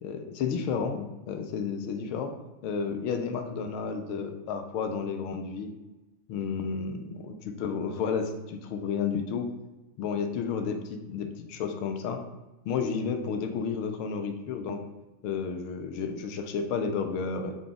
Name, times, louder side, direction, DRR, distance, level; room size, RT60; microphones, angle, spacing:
voice 1, 0.0-2.3 2.6-5.7 6.3-9.5 10.0-12.2 12.6-14.8 15.2-17.6, left 6 dB, 45° left, 6 dB, 0.4 m, -31 dB
3.3 x 2.3 x 3.4 m, 1.1 s
figure-of-eight pair, 90°, 0 cm